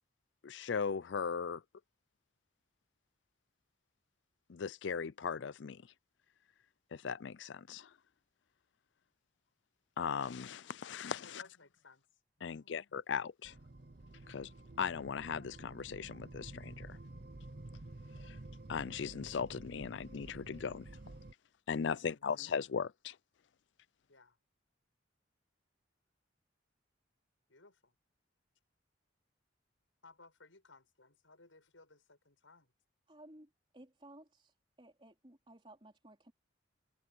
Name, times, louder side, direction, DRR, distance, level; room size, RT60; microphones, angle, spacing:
voice 1, 0.4-1.6 4.5-5.8 6.9-7.9 10.0-11.4 12.4-13.5 14.3-14.5 14.8-17.0 18.2-18.4 18.7-20.9 21.7-23.2, left 6 dB, 70° left, 0.4 m, -38 dB
voice 2, 11.2-12.0 12.4-12.8 21.9-22.3 24.1-24.4 27.5-28.0 30.0-32.7, left 3 dB, 90° left, 7.3 m, -61 dB
sound 1, 13.4-21.3, right 2 dB, 50° right, 0.9 m, -51 dB
voice 3, 33.1-36.3, right 1 dB, 25° right, 4.0 m, -57 dB
head